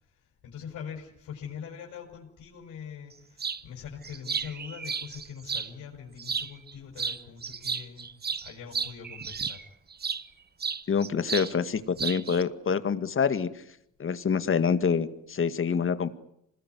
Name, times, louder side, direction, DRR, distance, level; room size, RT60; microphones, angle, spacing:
voice 1, 0.0-8.1 8.4-9.6, left 7 dB, 85° left, 0 dB, 6.4 m, -43 dB
sound 1, 3.4-3.6 4.0-5.7 6.2-6.7 7.0-10.2 10.6-11.5 11.8-12.4, right 6 dB, 30° right, 1.3 m, -33 dB
voice 2, 10.9-13.5 14.0-16.1, left 6 dB, 45° left, 12 dB, 2.1 m, -26 dB
26.5 x 20.5 x 9.6 m, 0.76 s
cardioid pair, 90°, 30 cm